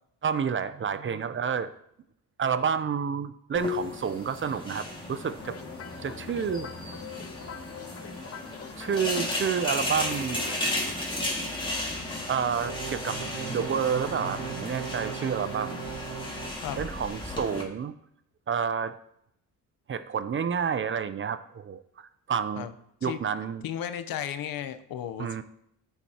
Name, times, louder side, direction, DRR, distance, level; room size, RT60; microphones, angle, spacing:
voice 1, 0.2-1.7 2.4-5.6 6.0-6.7 8.8-10.5 12.3-13.2 13.5-15.8 16.8-17.9 18.5-19.0 19.9-22.7 23.0-23.6 25.2-25.4, right 7 dB, 35° right, 12 dB, 0.5 m, -29 dB
sound 1, 3.5-17.6, left 1 dB, 15° left, 2.0 m, -34 dB
sound 2, 5.4-14.6, left 9 dB, 45° left, 0.7 m, -45 dB
sound 3, 12.6-16.5, right 11 dB, 80° right, 0.6 m, -38 dB
voice 2, 23.6-25.4, left 10 dB, 75° left, 11 dB, 0.8 m, -34 dB
13.5 x 7.1 x 2.9 m, 0.74 s
cardioid pair, 105°, 35 cm